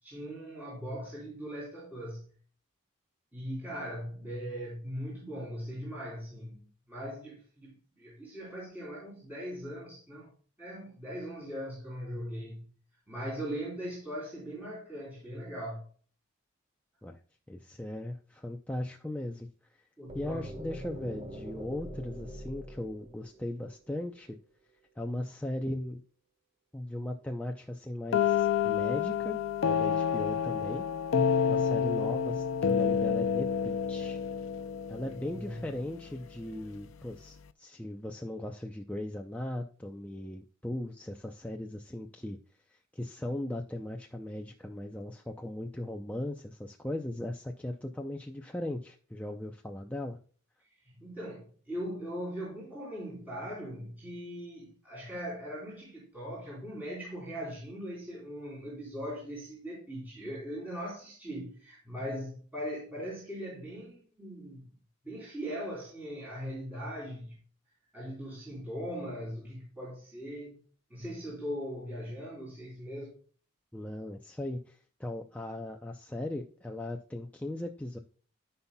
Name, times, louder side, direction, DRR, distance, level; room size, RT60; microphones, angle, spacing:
voice 1, 0.0-2.3 3.3-10.3 10.6-12.7 13.1-15.8 20.0-20.5 35.3-35.7 50.6-64.7 65.0-67.3 67.9-70.6 70.9-73.1, equal, 10° right, 3.3 m, -40 dB
voice 2, 17.5-19.9 20.1-24.4 25.0-26.0 26.7-29.4 29.6-30.9 31.1-34.2 34.9-42.4 42.7-50.2 73.7-78.0, left 1 dB, 5° left, 0.5 m, -38 dB
sound 1, 20.1-24.0, equal, 30° right, 1.4 m, -43 dB
sound 2, 28.1-35.8, left 7 dB, 75° left, 0.5 m, -29 dB
13.5 x 5.6 x 2.3 m
head